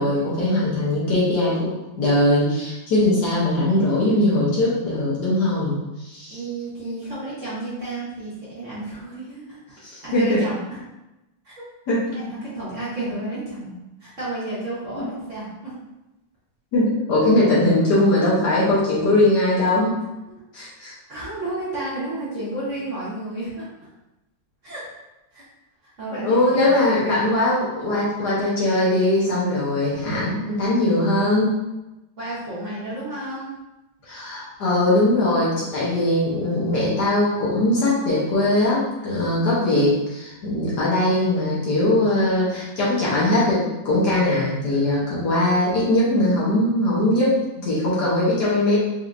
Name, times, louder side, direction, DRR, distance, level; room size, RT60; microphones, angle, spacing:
voice 1, 0.0-6.4 9.8-10.4 11.9-12.1 14.9-15.0 16.7-20.0 20.5-20.9 26.1-31.5 34.1-48.8, left 1 dB, 60° left, -7 dB, 1.4 m, -20 dB
voice 2, 6.3-9.6 10.0-10.8 11.4-11.6 12.1-13.7 14.0-15.7 21.1-23.9 24.6-24.8 25.3-25.5 25.8-27.2 32.2-33.5, right 2 dB, 45° right, -10 dB, 1.3 m, -31 dB
4.4 x 2.7 x 2.5 m, 0.98 s
omnidirectional pair, 2.2 m